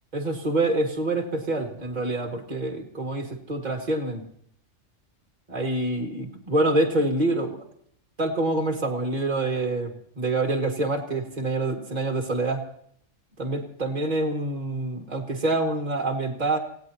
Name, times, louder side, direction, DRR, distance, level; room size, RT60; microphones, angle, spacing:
voice 1, 0.1-4.3 5.5-7.6 8.2-12.6 13.4-16.6, right 2 dB, 35° right, 1 dB, 2.2 m, -26 dB
28.5 x 17.0 x 2.9 m, 0.67 s
omnidirectional pair, 1.4 m